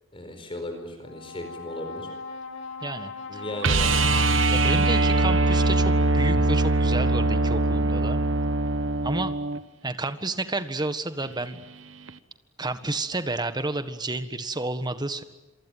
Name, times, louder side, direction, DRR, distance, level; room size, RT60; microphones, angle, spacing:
voice 1, 0.1-2.1 3.3-3.9, left 1 dB, 30° left, 6 dB, 4.6 m, -36 dB
Brass instrument, 1.0-5.4, left 4 dB, 85° left, 2.7 m, -40 dB
voice 2, 2.8-3.4 4.5-8.2 9.0-9.4 9.8-11.6 12.6-15.2, right 2 dB, 20° right, 10 dB, 1.6 m, -30 dB
sound 1, 3.6-9.6 12.1-12.2, right 2 dB, 70° right, 1.3 m, -22 dB
27.0 x 23.5 x 9.1 m, 1.0 s
head